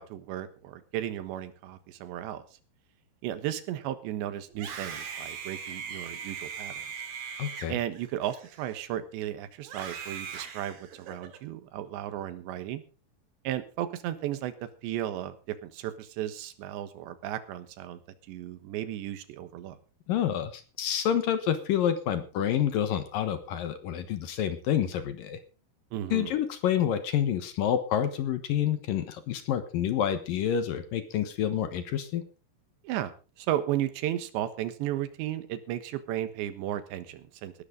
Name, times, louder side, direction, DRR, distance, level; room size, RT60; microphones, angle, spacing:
voice 1, 0.0-2.4 3.2-6.9 7.7-12.8 13.5-18.0 18.3-19.8 25.9-26.3 32.8-33.1 33.4-37.5, right 12 dB, 90° right, 12 dB, 3.6 m, -34 dB
Screaming, 4.5-9.0 9.6-11.4, right 7 dB, 60° right, 3.8 m, -40 dB
voice 2, 7.4-7.8 20.1-25.4 26.1-32.2, left 9 dB, 65° left, 11 dB, 2.5 m, -28 dB
19.0 x 11.5 x 3.8 m, 0.34 s
omnidirectional pair, 4.9 m